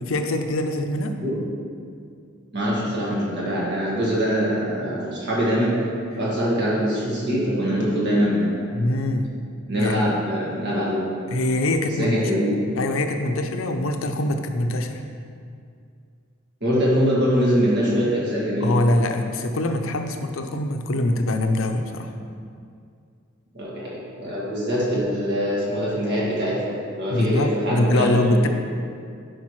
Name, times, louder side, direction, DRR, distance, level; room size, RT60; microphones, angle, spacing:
voice 1, 0.0-1.2 8.7-9.3 9.8-10.1 11.3-12.2 12.8-15.0 18.6-22.1 27.1-28.5, left 1 dB, 75° left, 6 dB, 0.6 m, -23 dB
voice 2, 2.5-5.8 6.2-8.7 9.7-11.1 12.0-12.7 16.6-18.7 23.5-28.5, equal, 55° right, -6 dB, 1.8 m, -23 dB
9.8 x 5.0 x 3.1 m, 2.3 s
head